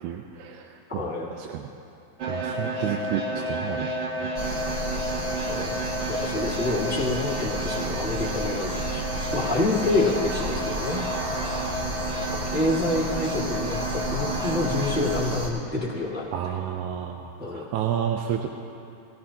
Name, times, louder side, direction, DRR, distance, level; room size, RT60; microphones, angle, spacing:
voice 1, 0.0-1.7 2.3-4.8 11.2-11.9 16.3-18.5, right 9 dB, 90° right, 3 dB, 2.1 m, -32 dB
voice 2, 0.9-1.3 5.5-5.8 6.1-9.0 9.3-11.2 12.3-16.3 17.4-17.7, left 2 dB, 5° right, -5 dB, 1.1 m, -27 dB
sound 1, 2.2-15.2, right 2 dB, 55° right, 1.7 m, -31 dB
sound 2, 4.3-15.5, equal, 30° right, 2.3 m, -32 dB
20.5 x 18.0 x 2.9 m, 2.6 s
omnidirectional pair, 3.3 m